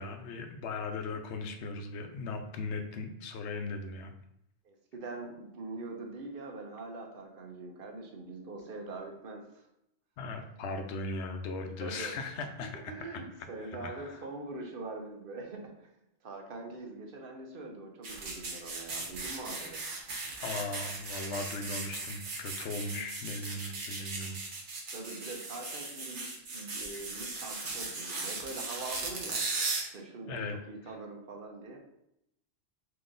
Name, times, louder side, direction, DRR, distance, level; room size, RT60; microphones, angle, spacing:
voice 1, 0.0-4.1 10.2-13.1 13.8-14.2 20.4-24.4 30.3-30.6, left 3 dB, 80° left, 6 dB, 0.9 m, -38 dB
voice 2, 4.6-9.6 11.8-15.9 16.2-19.8 24.9-31.8, right 3 dB, 55° right, 2 dB, 0.9 m, -43 dB
sound 1, 18.0-29.8, right 3 dB, 80° right, 1.2 m, -37 dB
3.8 x 2.9 x 3.8 m, 0.79 s
omnidirectional pair, 1.2 m